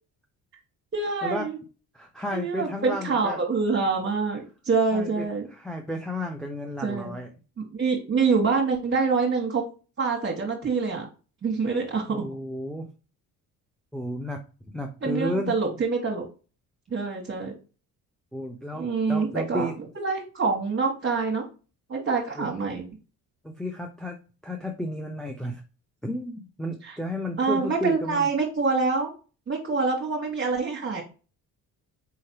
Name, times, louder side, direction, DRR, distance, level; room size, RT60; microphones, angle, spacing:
voice 1, 0.9-1.6 2.3-5.5 6.8-7.1 7.6-9.6 10.0-11.1 11.4-12.2 15.0-16.2 16.9-17.5 18.7-19.7 20.0-21.5 21.9-22.9 26.8-26.9 27.4-29.1 29.5-31.0, right 4 dB, 35° right, -2 dB, 1.3 m, -26 dB
voice 2, 1.9-3.4 4.9-7.3 12.1-12.9 13.9-15.5 18.3-19.8 22.4-22.5 23.4-24.2 24.4-25.6 26.0-28.3, left 1 dB, ahead, 1 dB, 0.6 m, -33 dB
4.7 x 3.2 x 2.8 m, 0.34 s
supercardioid pair, 70°, 39 cm